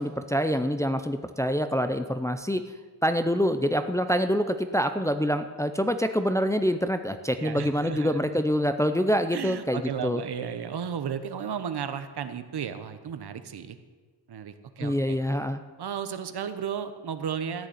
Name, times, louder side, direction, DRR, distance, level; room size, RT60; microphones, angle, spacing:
voice 1, 0.0-2.6 3.0-10.2 14.8-15.6, equal, 10° left, 8 dB, 0.5 m, -26 dB
voice 2, 7.4-8.1 9.3-13.8 14.3-15.2 15.8-17.7, right 7 dB, 70° right, 10 dB, 1.0 m, -34 dB
14.0 x 6.6 x 9.4 m, 1.4 s
wide cardioid pair, 150°, 41 cm